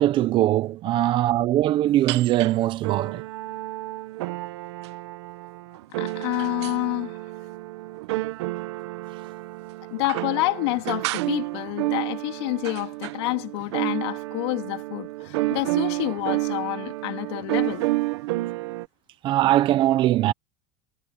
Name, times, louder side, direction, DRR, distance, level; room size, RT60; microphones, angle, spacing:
voice 1, 0.0-3.2 19.2-20.3, right 14 dB, 35° right, 0.8 m, -21 dB
sound 1, 2.1-2.5 2.8-18.9, right 20 dB, 85° right, 1.1 m, -30 dB
voice 2, 6.0-7.2 9.9-17.9, left 24 dB, 75° left, 2.7 m, -28 dB
supercardioid pair, 160°, 14 cm